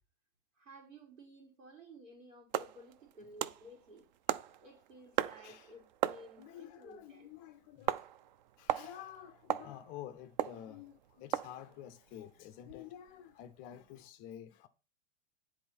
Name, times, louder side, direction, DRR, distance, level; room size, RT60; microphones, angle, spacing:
voice 1, 0.6-4.1 4.6-7.3, right 1 dB, 80° right, 3.1 m, -55 dB
sound 1, 2.5-14.0, right 10 dB, 40° right, 0.4 m, -39 dB
voice 2, 5.3-5.7 6.4-8.1 8.6-14.7, left 11 dB, 25° left, 0.4 m, -50 dB
9.9 x 4.1 x 4.4 m
hypercardioid pair, 110°, 37 cm